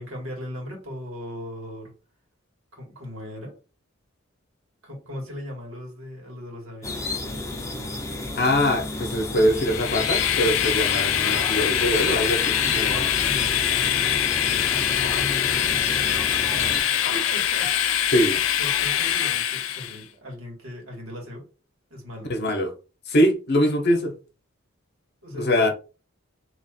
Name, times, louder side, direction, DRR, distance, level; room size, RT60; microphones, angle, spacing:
voice 1, 0.0-1.9 2.7-3.6 4.8-7.1 12.6-18.1 18.6-21.5 21.9-22.3 25.2-25.7, equal, 75° right, 1.7 m, -38 dB
sound 1, 6.8-16.8, left 2 dB, 15° left, 0.6 m, -32 dB
voice 2, 8.4-13.0 18.1-18.4 22.3-22.7 23.1-24.1 25.4-25.7, equal, 55° left, 0.8 m, -22 dB
Train, 9.5-20.0, left 11 dB, 75° left, 0.4 m, -24 dB
3.0 x 2.4 x 4.2 m
head